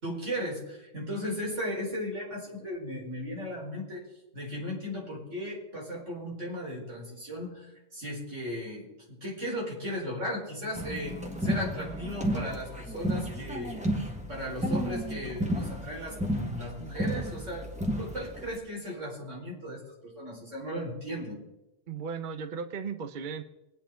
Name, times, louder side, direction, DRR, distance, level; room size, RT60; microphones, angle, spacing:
voice 1, 0.0-4.0 4.3-13.8 14.3-17.7 18.0-21.4, equal, 85° right, -3 dB, 5.1 m, -36 dB
sound 1, 10.8-18.6, equal, 5° right, 1.7 m, -32 dB
voice 2, 21.9-23.4, right 6 dB, 50° right, 10 dB, 0.8 m, -36 dB
23.0 x 9.3 x 3.8 m, 0.97 s
omnidirectional pair, 1.2 m